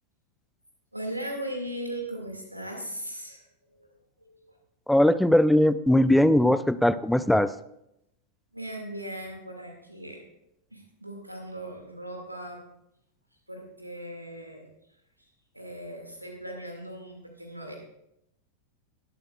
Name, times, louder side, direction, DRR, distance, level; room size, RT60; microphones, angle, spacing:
voice 1, 0.9-3.4 3.7-3.9 4.2-4.6 8.5-10.2 10.7-12.6 13.5-14.7 15.2-15.3 15.5-17.7, right 1 dB, 85° right, 2 dB, 2.1 m, -38 dB
voice 2, 4.9-7.5, left 1 dB, ahead, 14 dB, 0.5 m, -20 dB
21.0 x 7.9 x 2.4 m, 0.81 s
figure-of-eight pair, 90°, 0 cm